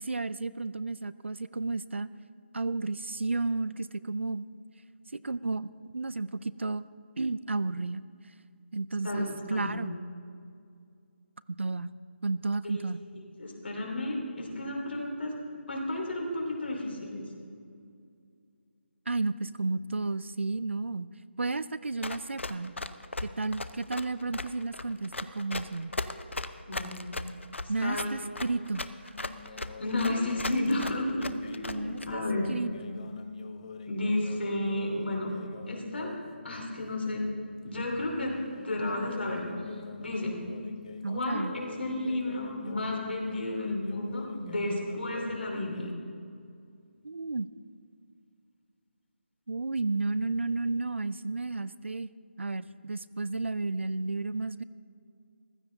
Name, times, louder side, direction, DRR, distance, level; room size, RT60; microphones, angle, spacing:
voice 1, 0.0-2.1 2.5-4.5 5.1-6.9 7.2-8.0 8.7-10.0 11.5-11.9 12.2-13.0 19.1-21.1 21.4-22.8 23.2-25.9 27.7-28.8 31.7-32.2 32.5-32.7 41.0-41.5 47.0-47.5 49.5-52.1 52.4-54.6, right 3 dB, 75° right, 16 dB, 0.5 m, -32 dB
voice 2, 13.4-15.3 15.7-17.3 26.7-27.0 27.8-28.2 29.5-32.5 33.9-35.3 35.7-36.2 36.4-37.3 37.6-39.4 40.0-40.4 41.1-45.9, left 1 dB, 65° left, 0 dB, 3.1 m, -32 dB
Run, 22.0-32.1, left 2 dB, 80° left, 0.7 m, -37 dB
sound 1, 29.1-36.2 36.5-37.0 38.9-45.9, left 4 dB, 35° left, 0.6 m, -43 dB
15.0 x 14.0 x 3.9 m, 2.3 s
figure-of-eight pair, 155°, 6 cm